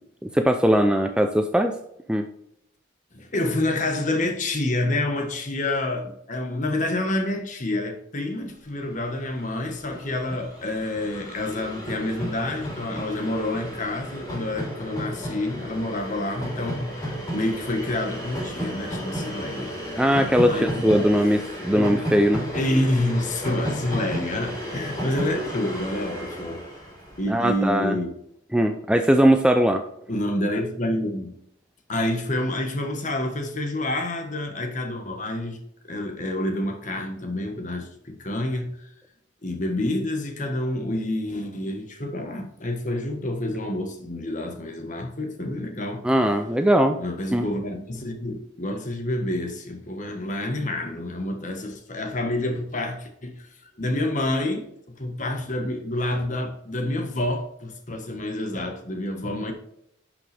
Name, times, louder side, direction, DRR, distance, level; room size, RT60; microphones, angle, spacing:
voice 1, 0.2-1.7 2.1-2.2 20.0-21.4 21.6-22.5 27.3-28.0 28.5-29.8 46.0-47.0 47.3-47.5, equal, 5° right, 0.4 m, -20 dB
voice 2, 3.1-20.0 20.5-21.1 21.8-21.9 22.5-26.6 27.2-28.1 30.1-31.3 31.9-35.6 35.9-38.9 39.4-46.0 47.0-53.5 53.8-54.7 55.0-59.5, left 1 dB, 35° left, 1.4 m, -28 dB
Train, 8.9-9.0 9.2-27.6, equal, 15° left, 3.5 m, -33 dB
11.0 x 5.7 x 3.4 m
head